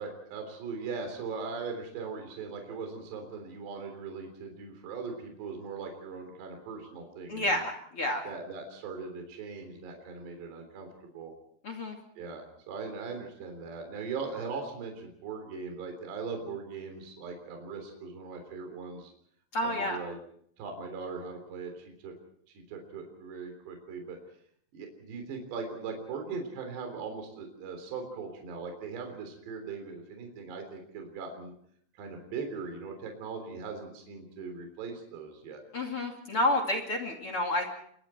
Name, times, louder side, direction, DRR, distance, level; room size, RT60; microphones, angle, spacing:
voice 1, 0.0-7.6 8.2-10.9 11.1-11.3 12.2-19.1 19.6-20.2 20.6-22.1 22.5-24.2 24.7-31.5 32.0-35.6, right 4 dB, 60° right, 4 dB, 5.6 m, -40 dB
voice 2, 7.3-8.2 11.6-12.0 19.5-20.0 35.7-37.7, left 1 dB, 35° left, 5 dB, 2.6 m, -29 dB
29.0 x 24.0 x 4.5 m, 0.66 s
omnidirectional pair, 5.6 m